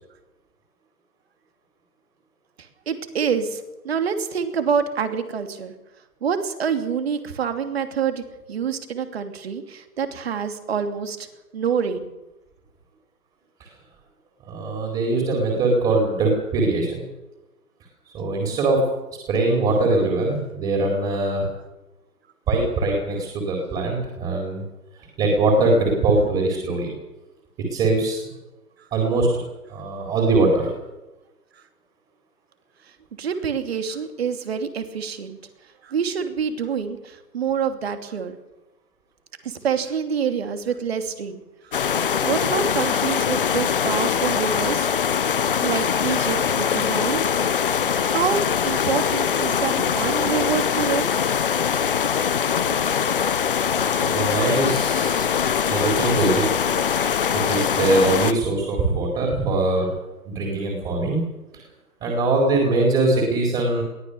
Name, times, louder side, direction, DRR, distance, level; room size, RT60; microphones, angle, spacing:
voice 1, 2.9-5.7 6.2-11.3 11.5-12.1 33.2-35.4 35.8-38.4 39.4-41.4 42.2-44.9 45.6-47.2 48.0-51.1, right 7 dB, 40° right, 8 dB, 2.9 m, -26 dB
voice 2, 14.5-17.0 18.1-18.8 19.3-21.5 22.5-24.6 25.2-26.9 27.7-28.2 28.9-29.3 29.7-30.7 53.9-55.3 55.7-56.4 57.3-59.9 60.2-61.2 62.0-63.8, right 2 dB, 15° right, 0 dB, 4.5 m, -22 dB
sound 1, 41.7-58.3, left 7 dB, 35° left, 1.1 m, -22 dB
22.5 x 18.0 x 7.0 m, 1.0 s
figure-of-eight pair, 150°, 47 cm